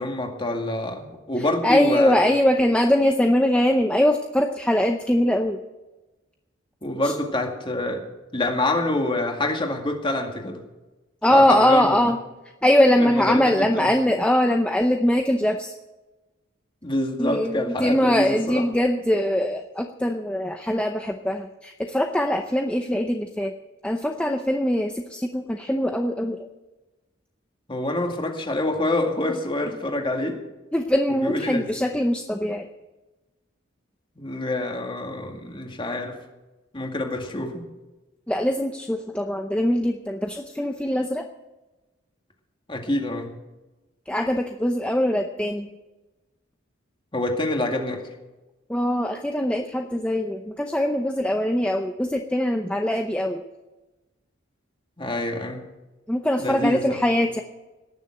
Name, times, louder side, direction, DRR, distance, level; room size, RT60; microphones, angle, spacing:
voice 1, 0.0-2.2 6.8-8.0 8.3-10.6 11.3-12.0 13.0-13.9 16.8-18.7 27.7-30.4 31.2-31.7 34.2-36.2 36.7-37.6 42.7-43.3 47.1-48.0 55.0-55.6 56.4-56.8, left 1 dB, 25° left, 2 dB, 2.1 m, -26 dB
voice 2, 1.6-5.6 7.0-7.1 11.2-12.2 12.6-15.7 17.2-23.5 23.8-26.4 30.7-32.7 38.3-41.2 44.1-45.7 48.7-53.4 56.1-57.4, left 1 dB, 5° left, 4 dB, 0.7 m, -22 dB
18.5 x 7.2 x 8.9 m, 1.1 s
head